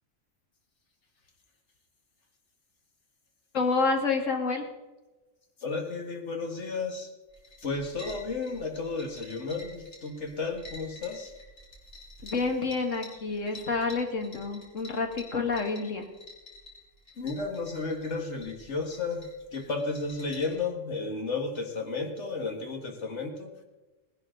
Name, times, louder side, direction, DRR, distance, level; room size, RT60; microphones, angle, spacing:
voice 1, 3.5-4.7 12.2-16.1, left 4 dB, 85° left, 4 dB, 2.1 m, -28 dB
voice 2, 5.6-7.1 7.6-11.3 17.2-23.5, left 3 dB, 65° left, 3 dB, 2.1 m, -33 dB
sound 1, 7.3-20.6, left 1 dB, 50° left, 3.4 m, -49 dB
19.0 x 11.5 x 3.8 m, 1.1 s
omnidirectional pair, 1.3 m